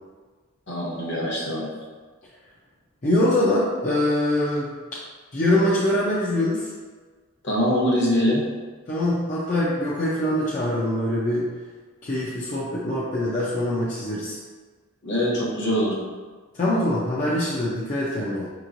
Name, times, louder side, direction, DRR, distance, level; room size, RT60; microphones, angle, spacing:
voice 1, 0.7-1.7 5.7-5.8 7.4-8.4 15.0-16.0, equal, 55° left, -4 dB, 1.0 m, -23 dB
voice 2, 3.0-4.7 5.3-6.7 8.9-11.5 12.0-14.4 16.5-18.5, left 1 dB, 35° left, -7 dB, 0.5 m, -23 dB
5.5 x 3.0 x 2.5 m, 1.4 s
head